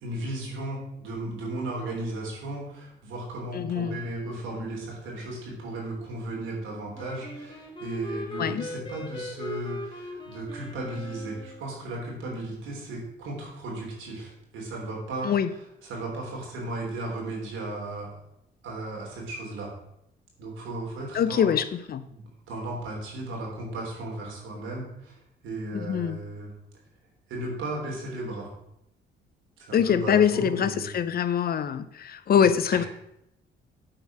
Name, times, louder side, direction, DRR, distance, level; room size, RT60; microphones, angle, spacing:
voice 1, 0.0-15.3 15.8-18.1 18.6-19.7 20.4-21.5 22.1-25.2 25.4-26.5 27.3-28.5 29.6-30.9 32.3-32.9, right 2 dB, 85° right, -2 dB, 3.3 m, -35 dB
voice 2, 3.5-4.0 8.4-8.6 15.2-15.5 21.1-22.0 25.7-26.2 29.7-32.9, left 8 dB, 50° left, 13 dB, 0.6 m, -24 dB
Wind instrument woodwind instrument, 6.9-11.7, left 2 dB, 25° left, 2.0 m, -39 dB
8.8 x 4.7 x 5.9 m, 0.80 s
cardioid pair, 90°, 20 cm